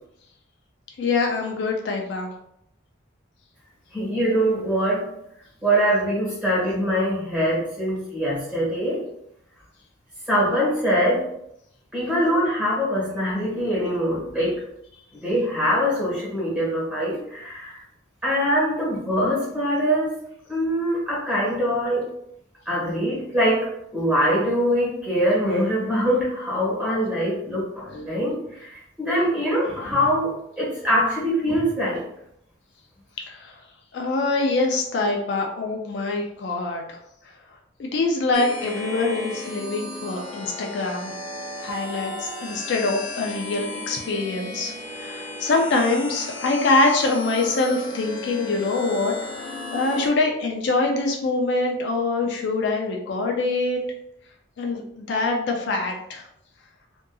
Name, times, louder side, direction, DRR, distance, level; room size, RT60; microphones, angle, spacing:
voice 1, 1.0-2.3 33.3-33.5 33.9-36.8 37.8-41.1 41.6-49.1 49.7-53.8 54.6-56.2, left 3 dB, 60° left, 1 dB, 0.4 m, -24 dB
voice 2, 3.9-5.1 5.6-9.0 10.3-11.2 11.9-14.6 15.2-17.8 18.2-20.2 20.5-22.1 22.6-23.7 23.9-32.0, equal, 5° right, -8 dB, 1.2 m, -23 dB
sound 1, 38.3-50.1, left 2 dB, 85° left, 0.8 m, -35 dB
2.7 x 2.5 x 2.3 m, 0.77 s
head